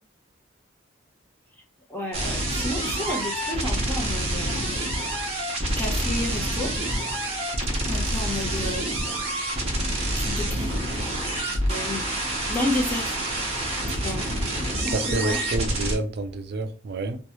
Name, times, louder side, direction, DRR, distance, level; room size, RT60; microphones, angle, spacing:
voice 1, 1.9-4.6 5.8-6.7 7.9-8.9 10.2-10.8 11.7-12.0 12.5-13.2 14.0-14.2 14.8-15.4, left 1 dB, 10° left, 0.7 m, -31 dB
sound 1, 2.1-15.9, right 1 dB, 30° right, 0.8 m, -27 dB
voice 2, 14.9-17.2, right 2 dB, 55° right, 0.4 m, -29 dB
3.0 x 2.2 x 2.9 m
head